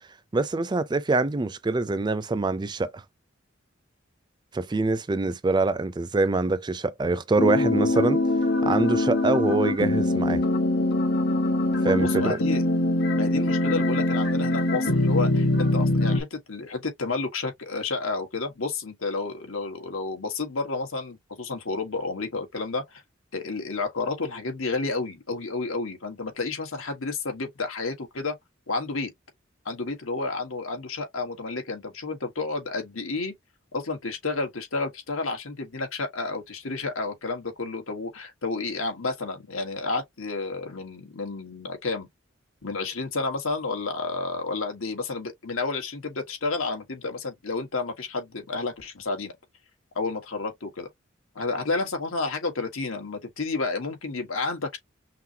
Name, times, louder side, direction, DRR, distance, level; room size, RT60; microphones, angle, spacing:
voice 1, 0.3-3.0 4.5-8.2 8.6-10.4 11.8-12.4, right 3 dB, 20° right, 0.4 m, -25 dB
sound 1, 7.4-16.2, left 1 dB, 55° left, 1.2 m, -23 dB
voice 2, 11.8-12.7 13.1-23.0 23.3-28.3 28.7-29.1 29.6-33.3 33.7-42.1 42.6-49.3 49.9-50.9 51.3-54.8, left 3 dB, 90° left, 1.5 m, -31 dB
5.8 x 2.2 x 2.8 m
head